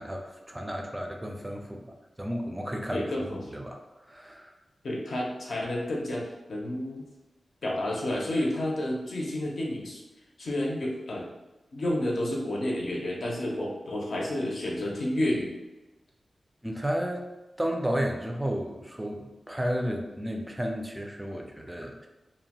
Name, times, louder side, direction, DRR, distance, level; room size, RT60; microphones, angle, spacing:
voice 1, 0.0-3.8 4.1-4.5 16.6-17.3 17.6-22.1, equal, 10° right, 2 dB, 0.3 m, -33 dB
voice 2, 2.9-3.4 4.8-7.0 7.6-10.0 10.4-11.2 11.7-15.5, left 1 dB, 65° left, -2 dB, 0.6 m, -30 dB
2.7 x 2.1 x 2.8 m, 1.1 s
wide cardioid pair, 135°, 0 cm